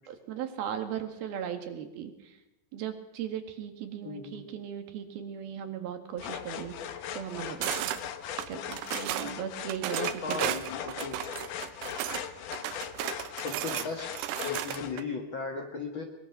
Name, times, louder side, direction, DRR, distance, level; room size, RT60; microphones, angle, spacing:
voice 1, 0.1-2.4 2.7-6.8 7.1-7.9 8.5-10.4, right 9 dB, 70° right, 7 dB, 3.7 m, -37 dB
voice 2, 4.0-4.6 8.9-9.0 10.2-11.2 13.3-16.0, left 4 dB, 50° left, 3 dB, 1.5 m, -37 dB
sound 1, 6.2-15.0, left 9 dB, 65° left, 2.3 m, -39 dB
sound 2, 7.6-8.0 8.4-9.3 9.7-12.2 12.5-15.0, right 12 dB, 85° right, 3.1 m, -34 dB
22.5 x 21.5 x 6.0 m, 0.94 s
omnidirectional pair, 4.7 m